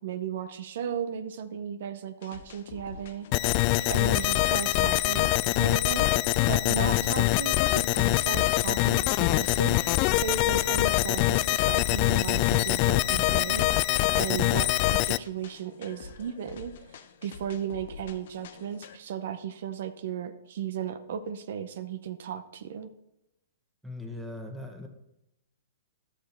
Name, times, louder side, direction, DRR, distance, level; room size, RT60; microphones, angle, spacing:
voice 1, 0.0-3.5 3.9-22.9, right 8 dB, 60° right, 9 dB, 0.7 m, -36 dB
sound 1, 2.2-19.0, left 6 dB, 60° left, 0.8 m, -47 dB
sound 2, 3.3-15.2, left 18 dB, 40° left, 0.3 m, -24 dB
voice 2, 23.8-24.9, left 2 dB, 5° right, 1 dB, 1.6 m, -39 dB
11.5 x 6.4 x 4.4 m, 0.87 s
hypercardioid pair, 125°, 0 cm